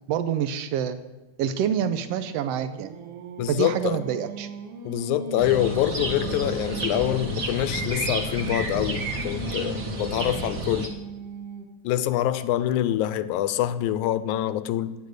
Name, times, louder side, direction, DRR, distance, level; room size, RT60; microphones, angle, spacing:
voice 1, 0.1-1.0 1.4-2.9 3.5-4.5, right 9 dB, 85° right, 11 dB, 1.4 m, -26 dB
Singing, 2.0-7.4 8.0-11.9, right 5 dB, 65° right, 1.7 m, -39 dB
voice 2, 3.4-4.0 4.9-10.9 11.8-15.0, left 12 dB, 80° left, 14 dB, 2.0 m, -25 dB
sound 1, 5.4-10.9, right 1 dB, 40° right, 1.2 m, -31 dB
15.0 x 9.2 x 6.5 m, 1.1 s
omnidirectional pair, 3.7 m